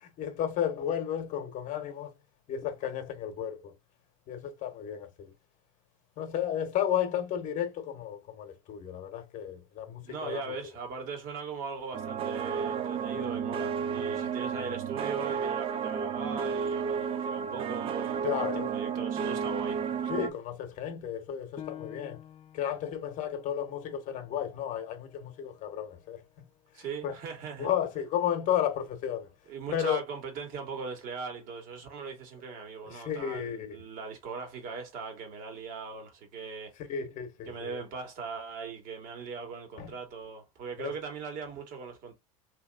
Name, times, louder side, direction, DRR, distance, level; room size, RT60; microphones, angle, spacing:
voice 1, 0.0-2.1 2.5-3.7 4.3-5.3 6.2-10.4 18.2-18.8 20.1-22.2 22.5-26.4 26.7-27.1 27.6-29.3 29.7-30.0 32.8-33.8 36.9-37.8 39.8-39.9 40.8-40.9, left 9 dB, 45° left, 1.0 m, -33 dB
voice 2, 10.0-19.8 26.7-27.7 29.5-36.8 37.5-42.1, right 5 dB, 50° right, 1.7 m, -40 dB
sound 1, 11.9-20.3, right 7 dB, 30° right, 0.5 m, -32 dB
Piano, 21.6-26.7 27.2-27.3 27.9-28.4, left 10 dB, 30° left, 0.6 m, -51 dB
2.9 x 2.9 x 2.3 m
hypercardioid pair, 100°, 18 cm